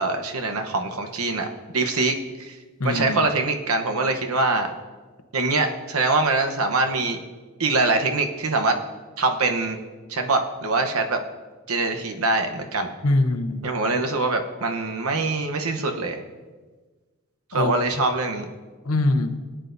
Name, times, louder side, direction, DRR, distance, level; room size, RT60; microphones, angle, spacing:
voice 1, 0.0-1.5 1.7-2.6 2.8-4.7 5.3-7.2 7.6-8.8 9.2-9.8 10.1-11.2 11.7-12.9 13.6-16.2 17.5-18.5, right 3 dB, 85° right, 5 dB, 1.0 m, -23 dB
voice 2, 2.8-3.3 13.0-13.7 17.5-17.8 18.8-19.4, left 2 dB, 85° left, 9 dB, 0.8 m, -23 dB
17.5 x 9.0 x 2.7 m, 1.4 s
head